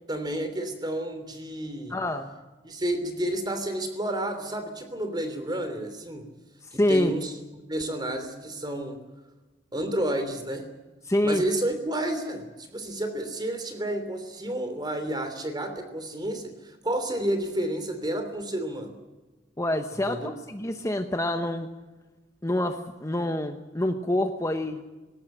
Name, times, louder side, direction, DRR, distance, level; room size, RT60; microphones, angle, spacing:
voice 1, 0.1-2.0 2.6-6.3 6.7-7.3 7.7-9.0 9.7-10.7 11.2-18.9 20.1-20.3, right 1 dB, 25° right, 8 dB, 3.1 m, -30 dB
voice 2, 1.9-2.3 6.7-7.1 11.1-11.4 19.6-21.7 22.4-24.8, left 1 dB, 15° left, 6 dB, 1.0 m, -26 dB
20.0 x 17.5 x 9.0 m, 1.2 s
head